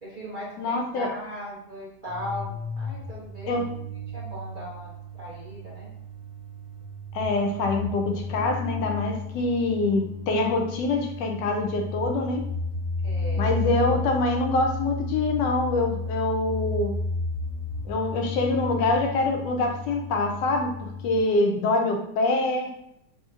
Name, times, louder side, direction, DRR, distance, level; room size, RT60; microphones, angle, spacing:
voice 1, 0.0-3.7 4.1-5.9 13.0-13.5, equal, 35° right, -8 dB, 1.0 m, -38 dB
voice 2, 0.6-1.1 3.5-3.7 7.1-12.4 13.4-16.9 17.9-22.7, left 2 dB, 85° left, 2 dB, 1.2 m, -25 dB
sound 1, 2.0-21.2, left 3 dB, 50° left, 1.3 m, -33 dB
3.5 x 2.8 x 2.4 m, 0.76 s
omnidirectional pair, 1.8 m